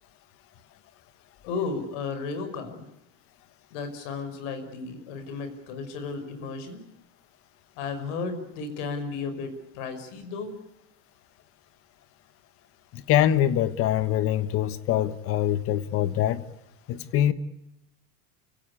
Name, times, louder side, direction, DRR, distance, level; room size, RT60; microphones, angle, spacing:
voice 1, 1.4-2.9 3.7-6.8 7.8-10.5, left 4 dB, 75° left, 8 dB, 5.7 m, -34 dB
voice 2, 12.9-16.4 16.9-17.3, left 11 dB, 35° left, 14 dB, 1.4 m, -24 dB
29.5 x 17.0 x 8.5 m, 0.86 s
cardioid pair, 175°, 37 cm